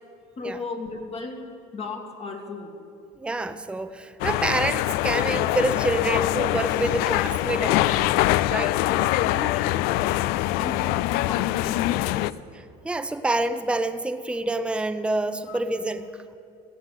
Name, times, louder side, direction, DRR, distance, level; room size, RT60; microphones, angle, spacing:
voice 1, 0.4-1.4 1.7-2.8 8.8-10.0 10.6-12.4 15.5-15.6, left 3 dB, 35° left, 3 dB, 2.0 m, -36 dB
voice 2, 3.2-8.1 8.4-8.8 12.8-16.1, right 2 dB, 5° right, 10 dB, 0.6 m, -27 dB
sound 1, 4.2-12.3, left 16 dB, 75° left, 0.4 m, -24 dB
16.5 x 8.1 x 8.1 m, 2.5 s
supercardioid pair, 110°, 16 cm